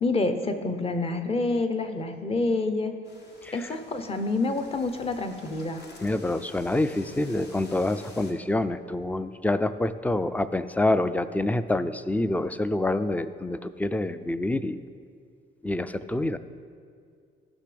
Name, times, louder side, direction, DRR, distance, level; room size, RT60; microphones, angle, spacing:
voice 1, 0.0-2.9 3.5-5.8, left 3 dB, 30° left, 7 dB, 0.8 m, -27 dB
sound 1, 3.0-8.3, left 2 dB, 55° left, 1.4 m, -50 dB
voice 2, 3.4-3.7 6.0-14.8 15.6-16.4, left 2 dB, 10° left, 13 dB, 0.3 m, -27 dB
15.0 x 6.1 x 3.4 m, 2.3 s
cardioid pair, 90°, 20 cm